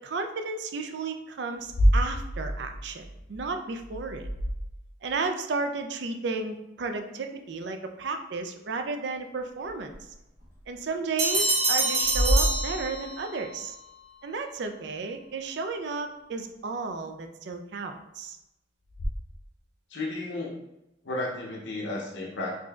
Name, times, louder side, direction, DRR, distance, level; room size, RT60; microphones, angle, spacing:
voice 1, 0.0-4.3 5.0-9.9 10.7-13.8 14.2-18.4, right 4 dB, 65° right, 6 dB, 0.4 m, -33 dB
sound 1, 1.6-5.2 9.6-9.7 10.6-10.7 12.0-13.3 18.9-19.1, equal, 35° left, 0.4 m, -28 dB
sound 2, 11.2-13.4, right 2 dB, 40° right, 1.1 m, -26 dB
voice 2, 19.9-20.6 21.0-22.5, left 2 dB, 70° left, -3 dB, 0.7 m, -33 dB
4.9 x 2.6 x 2.3 m, 0.91 s
head